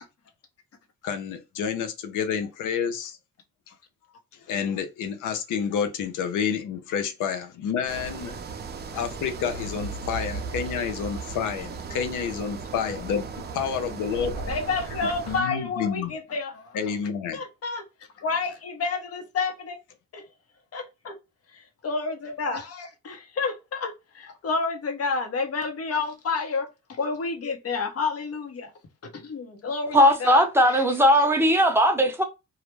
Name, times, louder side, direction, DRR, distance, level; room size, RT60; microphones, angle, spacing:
voice 1, 1.0-3.2 4.5-8.4 8.9-14.4 15.0-16.1 16.7-17.4, left 7 dB, 85° left, 0.7 m, -29 dB
sound 1, 7.9-15.4, right 4 dB, 35° right, 0.5 m, -36 dB
voice 2, 14.5-16.9 17.3-17.8 18.2-19.8 20.1-20.2 20.7-21.2 21.5-28.7 29.0-30.8, left 4 dB, 50° left, 0.9 m, -30 dB
voice 3, 29.9-32.2, equal, 10° right, 0.8 m, -18 dB
2.4 x 2.1 x 3.0 m
cardioid pair, 90°, 30 cm